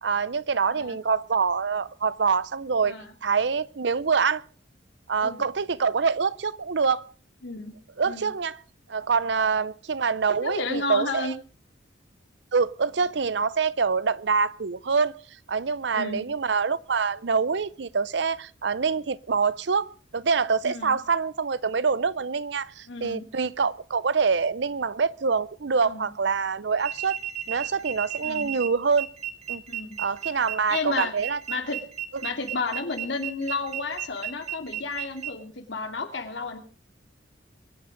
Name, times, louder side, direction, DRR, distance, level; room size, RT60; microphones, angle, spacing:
voice 1, 0.0-3.0 3.2-4.4 5.1-7.0 8.0-8.6 8.9-11.3 12.5-15.1 15.5-27.2 27.5-29.1 29.5-29.6 30.0-31.4, right 5 dB, 65° right, 0.6 m, -25 dB
voice 2, 0.7-1.0 2.8-3.1 5.2-5.4 7.4-7.7 8.0-8.3 10.3-11.3 15.9-16.3 20.6-21.0 22.9-23.3 25.8-26.1 28.2-28.5 29.7-30.0 30.7-31.1 31.5-31.8 32.2-36.6, left 3 dB, 70° left, 2.5 m, -32 dB
sound 1, 26.8-35.3, right 11 dB, 35° right, 1.4 m, -34 dB
23.0 x 9.5 x 5.2 m
head